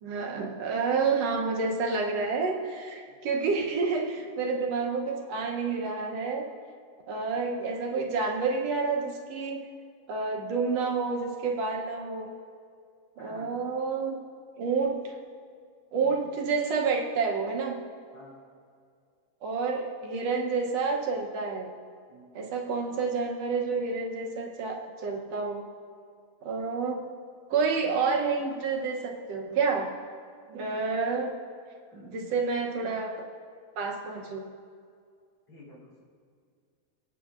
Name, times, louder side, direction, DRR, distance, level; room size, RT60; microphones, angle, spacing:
voice 1, 0.0-6.5 7.1-9.6 10.1-12.3 13.2-14.2 14.6-15.2 15.9-17.8 19.4-21.7 22.3-25.7 26.4-27.1 27.5-29.9 30.5-31.3 32.1-33.3 33.8-34.5, right 4 dB, 70° right, 1 dB, 1.8 m, -29 dB
voice 2, 13.2-13.5 16.0-16.1 18.1-18.3 22.1-22.2 31.9-32.4 35.5-36.0, left 1 dB, 50° left, -3 dB, 4.3 m, -49 dB
24.0 x 9.2 x 2.5 m, 2.2 s
omnidirectional pair, 3.4 m